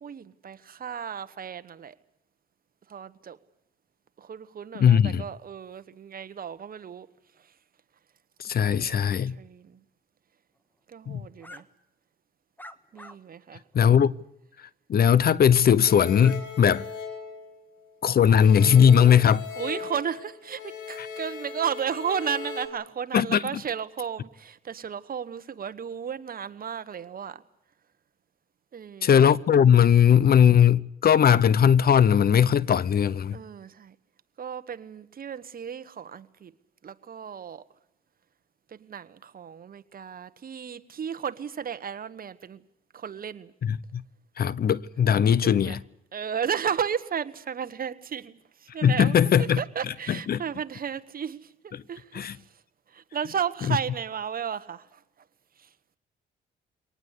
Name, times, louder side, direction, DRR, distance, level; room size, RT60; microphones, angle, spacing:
voice 1, 0.0-1.9 2.9-3.4 4.2-7.1 8.6-9.8 10.9-11.6 12.9-13.6 19.6-27.4 28.7-29.1 33.3-33.9 34.4-36.5 36.8-37.6 38.8-42.6 42.9-43.5 45.4-45.8 46.1-51.5 51.9-52.4 52.9-55.0 55.6-55.7, right 7 dB, 45° right, 1.3 m, -34 dB
voice 2, 4.7-5.2 8.4-9.3 11.1-11.2 13.7-14.1 14.9-16.8 18.0-19.4 21.0-21.1 23.1-23.4 29.0-33.4 43.6-44.0 44.4-45.8 48.8-49.6 50.1-50.4 51.7-51.8 52.1-52.4 53.7-53.8, left 8 dB, 50° left, 0.8 m, -19 dB
sound 1, 11.4-11.6 12.6-13.2 13.7-13.8 16.2-16.4 16.7-16.9, left 1 dB, 10° left, 1.6 m, -45 dB
sound 2, 15.8-18.0 18.3-22.7, left 5 dB, 75° left, 4.5 m, -39 dB
23.5 x 19.0 x 8.3 m
cardioid pair, 90°, 20 cm